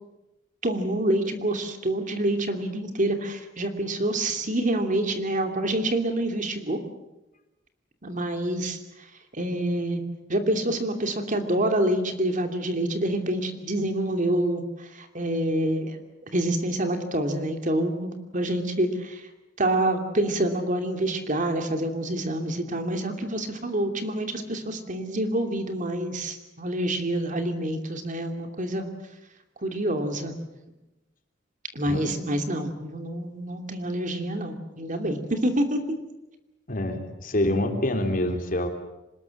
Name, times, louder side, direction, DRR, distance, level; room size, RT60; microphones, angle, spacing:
voice 1, 0.6-6.8 8.0-9.1 9.3-10.0 10.3-16.0 16.3-19.3 19.6-28.9 29.6-30.4 31.7-35.8, right 1 dB, 45° right, 6 dB, 2.8 m, -27 dB
voice 2, 36.7-38.7, left 1 dB, 45° left, 5 dB, 3.4 m, -26 dB
26.0 x 20.5 x 7.8 m, 0.97 s
head